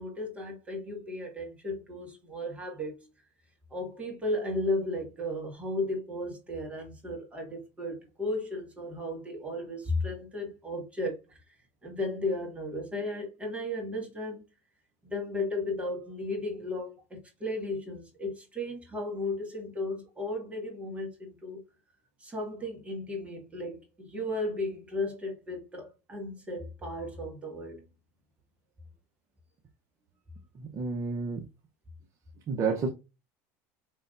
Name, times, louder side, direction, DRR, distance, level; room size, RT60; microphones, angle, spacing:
voice 1, 0.0-3.0 3.7-11.4 11.8-14.4 15.0-21.6 22.2-27.8, left 1 dB, 15° right, 1.9 m, -35 dB
voice 2, 30.6-31.4 32.5-32.9, right 4 dB, 45° right, 0.9 m, -30 dB
5.3 x 3.5 x 2.6 m
supercardioid pair, 105°, 8 cm